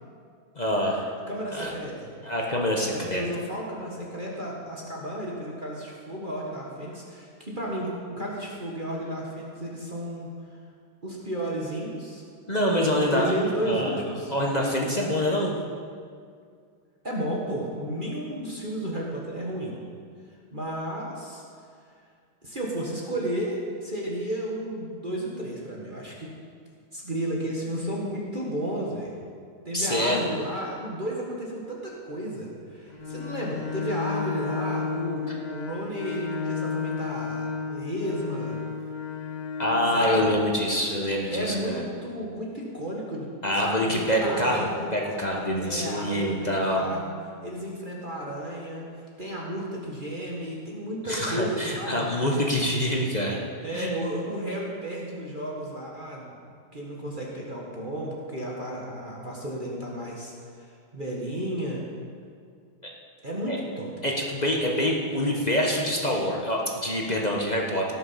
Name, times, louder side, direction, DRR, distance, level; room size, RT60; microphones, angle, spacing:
voice 1, 0.5-1.1 1.5-1.7 2.2-3.4 12.5-13.3 13.6-14.0 14.3-15.6 29.7-30.3 35.3-35.4 39.6-41.8 43.4-46.9 51.0-53.4 53.7-54.0 62.8-62.9 63.5-63.6 64.0-67.9, equal, 25° left, -1 dB, 0.9 m, -26 dB
voice 2, 1.3-2.1 2.9-10.6 11.0-12.2 12.9-14.3 17.0-19.8 20.5-21.4 22.4-26.3 26.9-29.1 29.6-38.6 39.9-40.3 41.3-43.3 43.6-44.9 45.5-47.0 47.4-52.1 53.6-56.3 56.7-61.8 63.2-63.9, right 1 dB, 25° right, -3 dB, 1.5 m, -33 dB
Bowed string instrument, 32.9-40.0, left 5 dB, 60° left, 0.4 m, -32 dB
17.5 x 6.9 x 5.7 m, 2.2 s
omnidirectional pair, 2.3 m